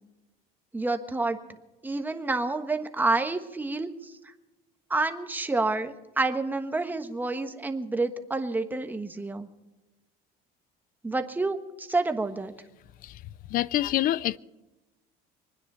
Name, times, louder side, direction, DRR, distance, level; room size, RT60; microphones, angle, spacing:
voice 1, 0.7-1.4 1.8-4.1 4.9-9.5 11.0-12.5, right 3 dB, 10° right, 1.3 m, -28 dB
voice 2, 13.5-14.4, left 14 dB, 50° left, 0.5 m, -26 dB
25.0 x 9.8 x 5.6 m
cardioid pair, 125°, 18 cm